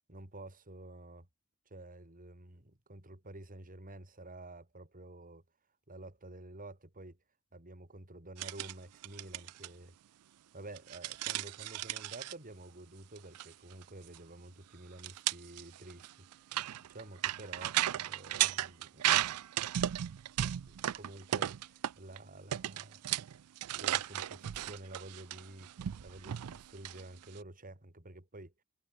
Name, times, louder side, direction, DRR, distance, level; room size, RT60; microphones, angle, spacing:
voice 1, 0.1-1.3 1.7-5.4 5.9-7.2 7.5-9.9 10.5-19.1 20.7-23.2 23.8-25.7 26.0-28.5, right 2 dB, 40° right, 3.8 m, -50 dB
sound 1, 8.4-8.7 9.0-9.7 10.8-12.3 13.2-13.5 13.7-13.8 14.1-14.2 15.0-22.2 22.5-27.4, right 12 dB, 90° right, 0.4 m, -35 dB
head